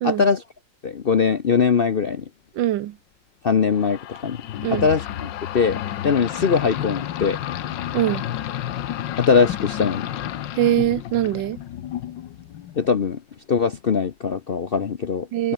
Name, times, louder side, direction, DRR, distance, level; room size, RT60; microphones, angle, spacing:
voice 1, 0.0-0.4 0.8-2.2 3.4-4.4 4.7-7.4 9.2-10.1 12.8-13.2 13.5-15.5, left 5 dB, 50° left, 0.6 m, -21 dB
voice 2, 2.6-2.9 4.6-4.9 7.9-8.2 10.6-11.6 15.3-15.5, right 13 dB, 85° right, 1.5 m, -22 dB
sound 1, 3.7-13.0, left 11 dB, 90° left, 1.7 m, -31 dB
omnidirectional pair, 1.9 m